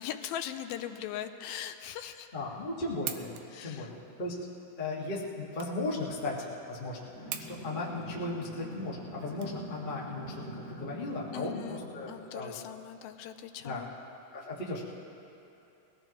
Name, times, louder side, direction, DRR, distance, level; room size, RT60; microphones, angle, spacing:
voice 1, 0.0-2.3 3.5-3.9 11.3-13.9, left 10 dB, 80° left, 7 dB, 2.3 m, -40 dB
voice 2, 2.3-4.4 4.8-12.6 13.6-13.8 14.3-14.8, left 2 dB, 45° left, -5 dB, 0.6 m, -36 dB
sound 1, 3.0-10.1, right 11 dB, 85° right, 2.6 m, -45 dB
sound 2, 7.1-12.2, right 1 dB, 25° right, 1.5 m, -44 dB
22.0 x 17.0 x 3.0 m, 2.8 s
omnidirectional pair, 4.4 m